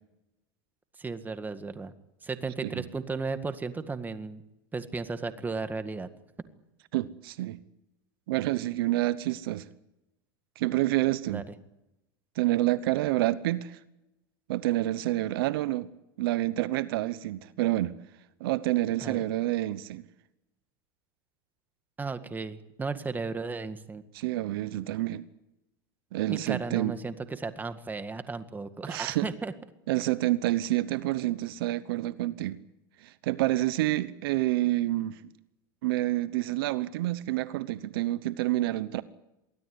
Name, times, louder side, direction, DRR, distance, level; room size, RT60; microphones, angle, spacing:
voice 1, 1.0-1.9 2.2-4.4 4.7-6.1 11.3-11.4 19.0-19.2 22.0-24.0 26.3-29.5, right 4 dB, 15° right, 1.9 m, -35 dB
voice 2, 6.9-7.6 8.3-9.7 10.6-11.4 12.4-13.8 14.5-15.9 16.2-17.9 18.4-20.0 24.1-25.2 26.1-27.0 28.9-29.3 29.9-32.6 33.0-35.2 35.8-39.0, right 16 dB, 75° right, 1.0 m, -28 dB
23.5 x 16.0 x 9.7 m
supercardioid pair, 120°, 12 cm